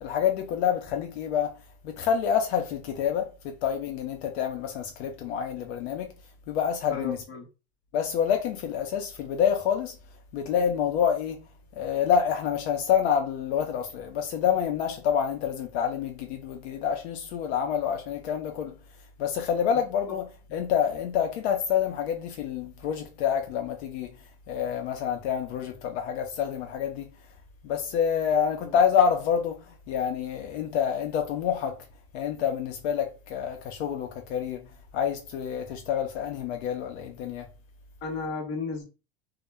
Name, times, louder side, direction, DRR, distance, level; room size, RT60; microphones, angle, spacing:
voice 1, 0.0-1.5 1.8-6.1 6.5-7.2 7.9-10.0 10.3-11.4 11.8-18.8 19.2-24.2 24.5-27.1 27.6-31.8 32.1-34.7 34.9-37.5, left 8 dB, 70° left, 0.5 m, -27 dB
voice 2, 6.9-7.5 28.6-28.8 38.0-38.8, left 4 dB, 35° left, 0.7 m, -34 dB
2.0 x 2.0 x 3.2 m
supercardioid pair, 175°, 34 cm